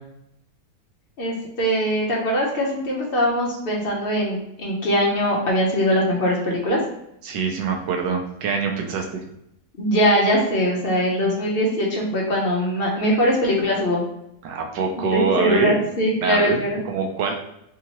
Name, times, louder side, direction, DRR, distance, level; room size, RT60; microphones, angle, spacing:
voice 1, 1.2-6.8 9.8-14.0 15.1-16.8, equal, 55° left, -2 dB, 0.6 m, -21 dB
voice 2, 7.2-9.2 14.4-15.8 16.2-16.6 16.9-17.3, right 5 dB, 85° right, 2 dB, 1.3 m, -24 dB
3.5 x 2.8 x 2.9 m, 0.80 s
omnidirectional pair, 1.8 m